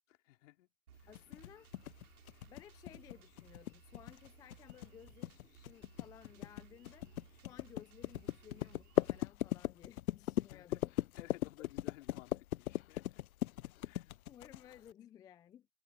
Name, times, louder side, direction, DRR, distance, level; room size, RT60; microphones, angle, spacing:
voice 1, 0.1-0.7 1.0-1.1 10.5-10.8 11.2-13.2 13.8-14.1, left 17 dB, 55° left, 3.5 m, -57 dB
Drum kit, 0.9-9.2, right 8 dB, 80° right, 6.8 m, -62 dB
sound 1, 1.1-14.9, left 14 dB, 70° left, 0.6 m, -38 dB
voice 2, 1.1-1.7 2.5-10.9 14.3-15.7, left 10 dB, 10° left, 0.4 m, -58 dB
hypercardioid pair, 120°, 44 cm